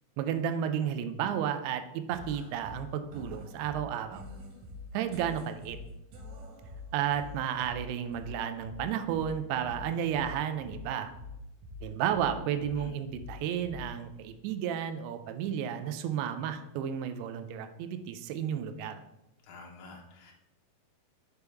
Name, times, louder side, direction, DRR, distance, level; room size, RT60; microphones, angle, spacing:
voice 1, 0.2-4.2 4.9-5.8 6.9-11.1 11.8-19.0, right 9 dB, 90° right, 9 dB, 2.5 m, -32 dB
sound 1, 2.1-14.1, left 2 dB, 70° right, 1.8 m, -46 dB
voice 2, 19.4-20.3, left 3 dB, 85° left, 0 dB, 1.6 m, -48 dB
6.8 x 3.5 x 4.5 m, 0.89 s
omnidirectional pair, 4.5 m